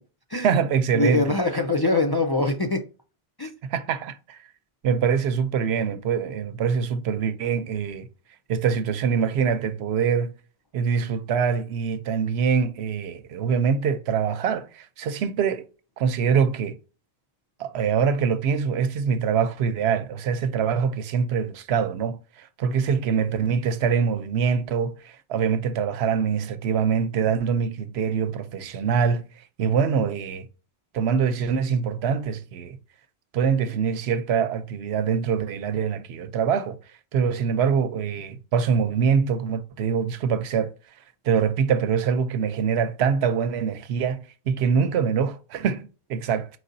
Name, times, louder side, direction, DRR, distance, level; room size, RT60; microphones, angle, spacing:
voice 1, 0.4-1.2 3.6-4.4 4.8-8.1 8.5-10.3 10.7-15.7 16.0-16.8 17.6-29.2 29.6-30.5 30.9-32.8 33.3-36.8 37.1-40.7 41.2-44.2 44.5-46.5, right 6 dB, 85° right, 0.9 m, -24 dB
voice 2, 0.9-2.8 3.4-3.5, left 2 dB, 35° left, 0.4 m, -23 dB
4.7 x 4.0 x 2.6 m
omnidirectional pair, 1.1 m